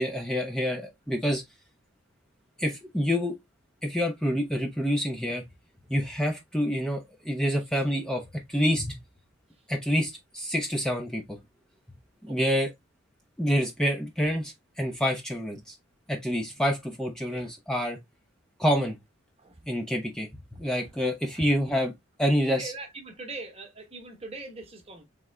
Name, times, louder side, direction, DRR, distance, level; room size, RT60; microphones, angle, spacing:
voice 1, 0.0-1.4 2.6-3.4 3.8-5.4 5.9-9.0 9.7-11.4 12.2-12.7 13.4-15.7 16.1-18.0 18.6-19.0 19.7-21.9 22.2-22.7, equal, 5° left, 0.6 m, -27 dB
voice 2, 22.6-25.0, right 3 dB, 30° right, 1.0 m, -41 dB
3.6 x 3.4 x 3.2 m
head